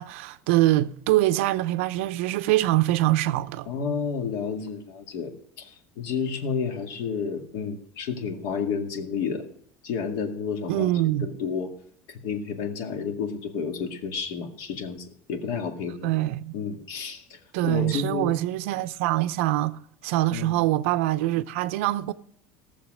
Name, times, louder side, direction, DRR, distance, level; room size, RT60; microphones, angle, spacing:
voice 1, 0.0-3.7 10.7-11.3 16.0-16.6 17.5-22.1, right 16 dB, 80° right, 0.7 m, -24 dB
voice 2, 3.7-5.3 5.6-9.4 9.8-11.7 12.1-16.1 16.5-18.3 20.3-20.5, left 6 dB, 60° left, 2.1 m, -31 dB
16.5 x 7.2 x 6.2 m
cardioid pair, 155°, 7 cm